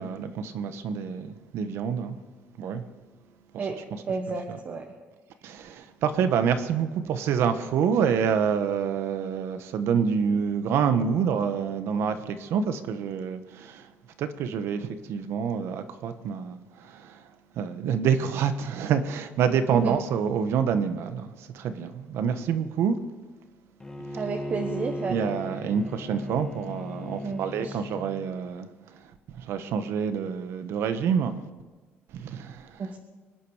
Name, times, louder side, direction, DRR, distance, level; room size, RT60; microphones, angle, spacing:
voice 1, 0.0-2.2 2.6-2.8 3.5-4.6 5.4-13.9 14.2-23.0 24.1-24.2 25.1-31.4 32.1-32.9, right 7 dB, 70° right, 1.2 m, -27 dB
voice 2, 4.1-4.8 19.7-19.9 24.1-25.2 27.2-27.7 32.8-33.0, right 4 dB, 40° right, 1.3 m, -31 dB
Bowed string instrument, 23.8-28.3, left 1 dB, 10° left, 1.4 m, -37 dB
24.5 x 10.0 x 4.9 m
cardioid pair, 145°, 5 cm